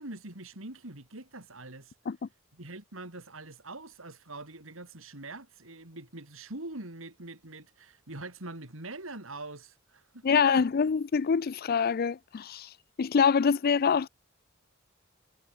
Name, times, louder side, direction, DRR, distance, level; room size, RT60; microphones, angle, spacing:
voice 1, 0.0-1.9 2.5-10.6, right 2 dB, 85° right, 4.3 m, -44 dB
voice 2, 10.2-12.7 13.0-14.1, left 6 dB, 50° left, 0.4 m, -25 dB
head